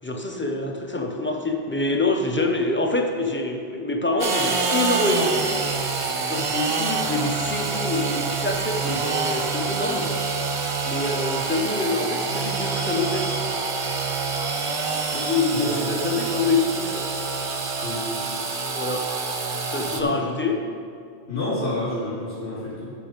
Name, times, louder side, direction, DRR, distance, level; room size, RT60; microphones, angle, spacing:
voice 1, 0.0-5.7 6.2-10.1 10.8-13.3 15.1-17.1 18.7-19.1 19.7-20.6, left 2 dB, 15° left, 3 dB, 0.5 m, -26 dB
Engine / Sawing, 4.2-20.0, right 4 dB, 35° right, 0.6 m, -26 dB
voice 2, 19.9-20.3 21.3-22.9, left 2 dB, 65° left, -10 dB, 2.9 m, -29 dB
10.5 x 5.2 x 5.1 m, 2.4 s
omnidirectional pair, 1.1 m